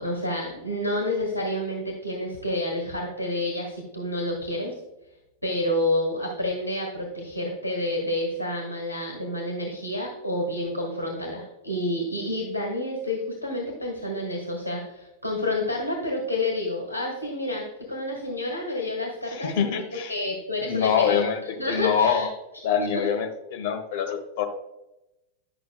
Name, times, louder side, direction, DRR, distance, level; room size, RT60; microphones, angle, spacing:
voice 1, 0.0-4.7 5.4-19.8 20.1-22.3 22.8-23.1, left 1 dB, 90° right, -1 dB, 1.6 m, -29 dB
voice 2, 19.3-20.1 20.6-22.3 22.6-24.4, left 7 dB, 50° left, 4 dB, 1.2 m, -25 dB
12.0 x 5.9 x 2.3 m, 0.94 s
figure-of-eight pair, 90°, 0 cm